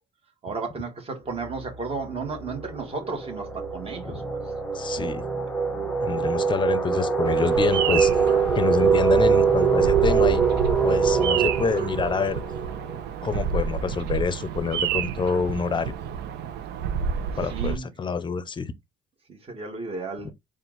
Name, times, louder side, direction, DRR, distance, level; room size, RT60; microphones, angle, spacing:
voice 1, 0.4-4.4 17.4-17.9 19.3-20.3, right 4 dB, 35° right, 1.8 m, -33 dB
Malevolent Ambience, 1.4-1.7 2.0-13.5, right 5 dB, 5° left, 1.0 m, -23 dB
voice 2, 4.7-5.3 6.0-8.1 8.5-10.4 10.8-12.4 13.2-15.9 17.4-18.7 20.2-20.3, left 5 dB, 30° left, 0.6 m, -27 dB
Bird vocalization bird call bird song, 7.2-17.8, right 7 dB, 80° right, 0.7 m, -30 dB
4.3 x 2.5 x 3.9 m
cardioid pair, 110°, 17 cm